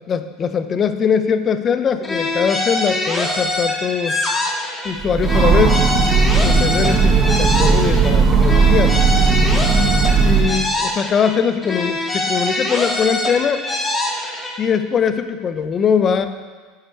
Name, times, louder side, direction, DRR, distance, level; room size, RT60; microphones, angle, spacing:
voice 1, 0.1-4.2 4.8-5.9 6.4-9.0 10.2-13.6 14.6-16.3, left 7 dB, 35° left, 10 dB, 0.7 m, -21 dB
sound 1, 2.0-4.9 5.2-8.1 8.4-11.3 11.6-14.5, left 2 dB, 15° left, 2.0 m, -23 dB
Train, 5.0-10.7, right 5 dB, 35° right, 1.3 m, -16 dB
9.7 x 7.4 x 4.7 m, 1.4 s
supercardioid pair, 105°, 0 cm